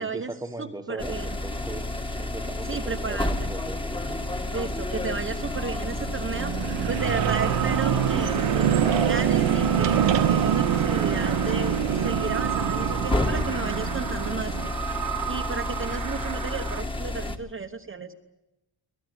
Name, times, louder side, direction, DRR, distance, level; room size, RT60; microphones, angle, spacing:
voice 1, 0.0-4.2, right 2 dB, 10° right, 7 dB, 1.3 m, -39 dB
voice 2, 0.6-1.4 2.7-3.5 4.5-6.5 6.9-14.5 15.3-18.1, right 5 dB, 25° right, 3 dB, 1.1 m, -33 dB
sound 1, 1.0-17.4, left 1 dB, 10° left, 1.6 m, -31 dB
sound 2, 4.9-14.7, right 10 dB, 75° right, 1.1 m, -26 dB
sound 3, 7.0-16.8, right 9 dB, 45° right, 1.3 m, -34 dB
23.5 x 18.5 x 9.8 m, 0.96 s
wide cardioid pair, 175°, 45 cm